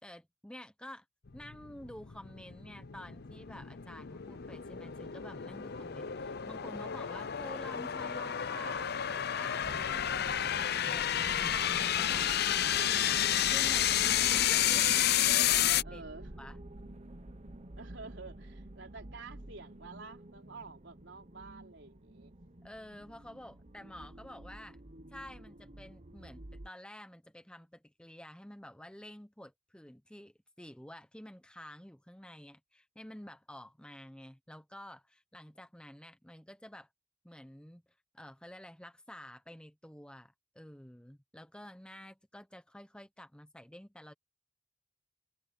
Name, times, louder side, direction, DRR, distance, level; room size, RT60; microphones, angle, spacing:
voice 1, 0.0-1.0 1.3-12.6 12.8-14.9 15.3-16.0 16.4-16.6 22.6-24.8 25.1-36.9 37.2-37.8 38.1-44.1, left 1 dB, 5° left, 1.0 m, -50 dB
sound 1, 1.3-15.8, left 10 dB, 55° left, 0.6 m, -31 dB
sound 2, 9.6-26.7, right 1 dB, 35° right, 1.1 m, -48 dB
voice 2, 15.8-16.3 17.8-22.3, right 4 dB, 60° right, 4.7 m, -49 dB
head